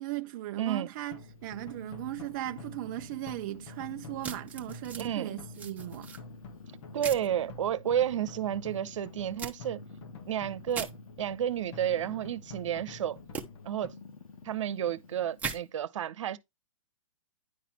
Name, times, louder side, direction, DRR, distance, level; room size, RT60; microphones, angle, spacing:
voice 1, 0.0-6.1, right 15 dB, 35° right, 0.4 m, -37 dB
voice 2, 0.6-0.9 5.0-5.4 6.9-9.8 10.3-10.9 11.2-13.2 13.6-13.9 14.4-16.4, right 10 dB, 65° right, 0.9 m, -31 dB
Purr, 0.9-15.7, left 4 dB, 85° left, 2.3 m, -52 dB
sound 1, 1.1-13.9, left 3 dB, 55° left, 1.6 m, -48 dB
sound 2, 4.2-5.1 5.5-6.2 7.0-7.3 9.4-9.5 10.7-10.9 13.3-13.4 15.4-15.6, right 6 dB, 10° right, 1.1 m, -38 dB
10.0 x 4.2 x 4.2 m
hypercardioid pair, 135°, 17 cm